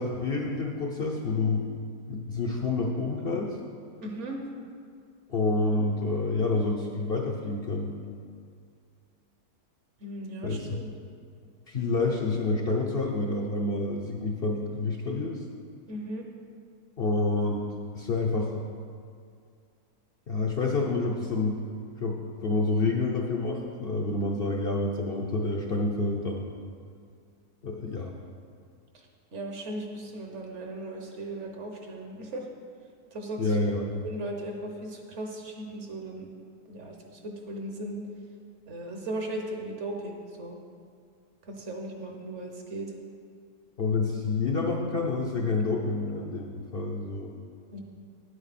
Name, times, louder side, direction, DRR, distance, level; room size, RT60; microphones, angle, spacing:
voice 1, 0.0-1.6 2.1-3.6 5.3-7.9 10.4-10.7 11.7-15.4 17.0-17.7 17.9-18.5 20.3-21.6 22.0-26.6 27.6-28.1 33.4-34.0 43.8-47.3, left 3 dB, 50° left, 0 dB, 0.8 m, -28 dB
voice 2, 4.0-4.5 10.0-10.9 15.9-16.2 28.9-29.1 29.3-32.5 33.1-33.6 34.0-36.3 36.7-38.0 38.7-40.6 41.4-42.9 47.7-47.8, right 1 dB, 55° right, 2 dB, 1.2 m, -37 dB
10.0 x 7.9 x 4.1 m, 2.2 s
omnidirectional pair, 1.6 m